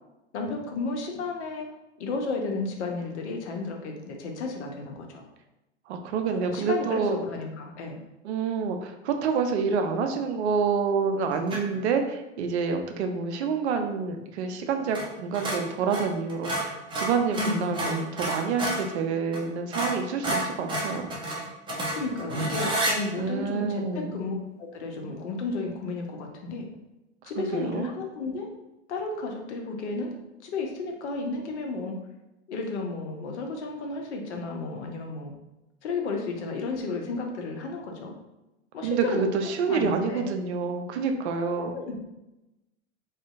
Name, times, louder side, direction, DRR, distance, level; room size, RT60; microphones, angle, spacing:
voice 1, 0.3-1.7 2.0-5.2 6.3-8.0 17.4-18.0 21.9-26.6 27.2-28.5 28.9-30.1 30.4-32.0 32.5-35.3 35.8-38.1 38.7-39.3 39.6-40.3 41.6-42.0, left 3 dB, 70° left, 2 dB, 0.6 m, -33 dB
voice 2, 5.9-7.2 8.2-21.1 23.2-24.1 27.4-27.9 38.8-41.7, right 5 dB, 70° right, 5 dB, 0.5 m, -28 dB
sound 1, 11.5-11.8 14.9-15.1 15.3-18.9 19.3-19.4 19.7-23.0, right 1 dB, 15° right, 0.5 m, -30 dB
2.6 x 2.1 x 2.4 m, 0.97 s
hypercardioid pair, 90°, 35 cm